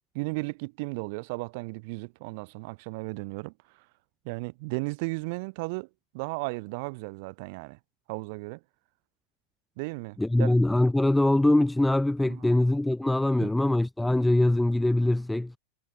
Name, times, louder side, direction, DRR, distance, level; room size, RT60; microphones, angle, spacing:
voice 1, 0.1-3.5 4.2-5.9 6.1-7.8 8.1-8.6 9.8-10.6 12.3-12.4 13.4-13.5, right 28 dB, 45° right, 0.9 m, -35 dB
voice 2, 10.2-15.5, left 1 dB, 5° left, 0.8 m, -23 dB
figure-of-eight pair, 95°, 0 cm